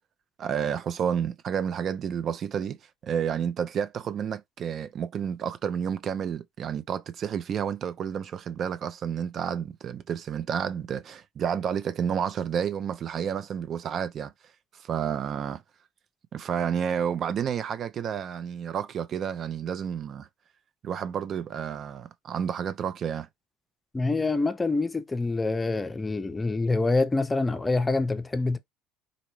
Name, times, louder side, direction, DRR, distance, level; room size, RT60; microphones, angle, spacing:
voice 1, 0.4-2.8 3.0-14.3 14.7-15.6 16.3-20.3 20.8-23.3, right 8 dB, 50° right, 0.4 m, -30 dB
voice 2, 23.9-28.6, left 3 dB, 20° left, 0.5 m, -26 dB
4.0 x 2.1 x 3.1 m
supercardioid pair, 80°, 0 cm